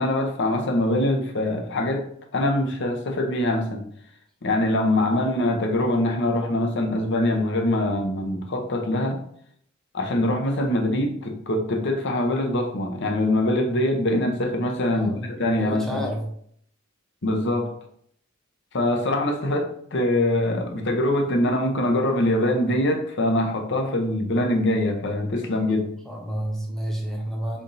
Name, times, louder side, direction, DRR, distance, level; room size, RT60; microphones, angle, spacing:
voice 1, 0.0-2.1 2.3-3.9 4.4-9.2 9.9-16.0 17.2-17.7 18.7-25.9, left 1 dB, 60° left, 3 dB, 0.8 m, -23 dB
voice 2, 14.9-15.3 15.6-16.3 26.0-27.6, equal, ahead, -1 dB, 0.9 m, -30 dB
3.9 x 3.4 x 4.0 m, 0.66 s
head